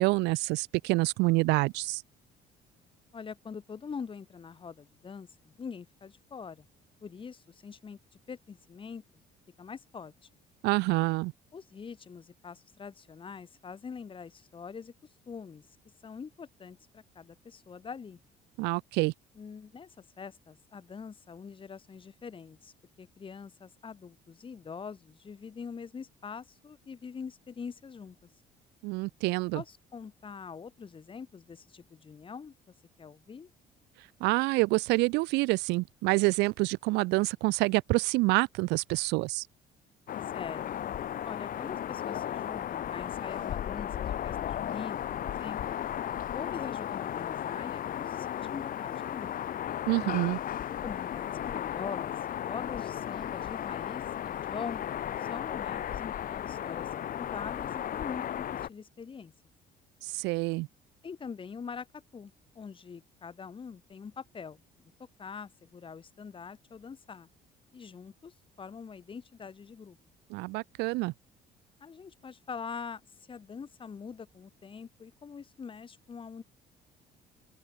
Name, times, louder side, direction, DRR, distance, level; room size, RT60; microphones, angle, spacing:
voice 1, 0.0-2.0 10.6-11.3 18.6-19.1 28.8-29.6 34.2-39.4 49.9-50.4 60.0-60.7 70.3-71.1, right 23 dB, 90° right, 0.4 m, -27 dB
voice 2, 3.1-6.7 7.0-8.0 8.3-9.2 9.6-10.1 11.5-14.9 15.3-15.7 16.0-18.2 19.4-28.2 29.5-32.5 33.0-33.5 40.3-40.7 41.2-45.8 46.3-49.4 50.8-52.1 52.5-59.3 61.0-64.6 65.2-67.3 67.7-70.0 71.8-73.0 73.3-76.4, left 6 dB, 30° left, 1.8 m, -44 dB
sound 1, 40.1-58.7, left 10 dB, 55° left, 2.6 m, -35 dB
open air
cardioid pair, 110°, 17 cm